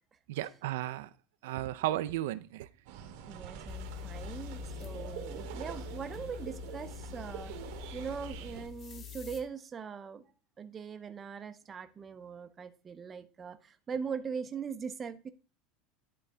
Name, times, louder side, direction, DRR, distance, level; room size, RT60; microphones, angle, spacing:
voice 1, 0.3-1.1 1.4-2.7, right 14 dB, 85° right, 13 dB, 0.4 m, -34 dB
sound 1, 2.9-8.7, right 8 dB, 60° right, 1.0 m, -45 dB
voice 2, 3.3-7.5 7.9-10.2 10.6-15.3, right 6 dB, 15° right, 9 dB, 0.5 m, -41 dB
sound 2, 3.7-9.4, left 11 dB, 25° left, 1.0 m, -45 dB
11.0 x 3.9 x 3.3 m, 0.36 s
supercardioid pair, 175°, 0 cm